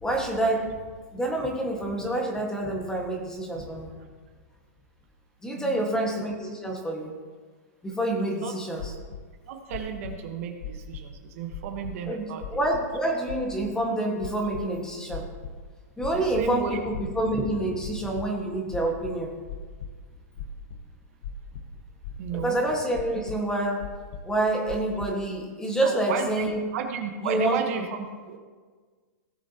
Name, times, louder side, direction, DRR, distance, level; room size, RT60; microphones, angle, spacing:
voice 1, 0.0-0.8 1.1-3.9 5.4-7.1 7.8-8.9 12.1-15.2 16.0-19.3 22.3-23.8 24.2-26.6 27.2-27.8, right 1 dB, 5° left, 1 dB, 1.6 m, -27 dB
voice 2, 5.5-5.9 8.3-8.5 9.5-12.4 16.1-16.8 22.2-22.6 25.8-28.4, right 7 dB, 55° right, 4 dB, 1.3 m, -33 dB
sound 1, 8.8-9.2 9.7-10.1 10.6-11.1 11.5-11.9 12.4-12.8 13.3-13.7 14.2-14.6 15.1-15.6 16.0-16.5 16.9-17.5 17.8-18.3 18.7-19.9 20.4-20.8 21.2-21.7 22.0-22.5 22.9-23.4 23.8-24.3 24.7-25.1, left 6 dB, 65° left, 1.1 m, -38 dB
17.0 x 7.3 x 2.9 m, 1.5 s
hypercardioid pair, 140°, 9 cm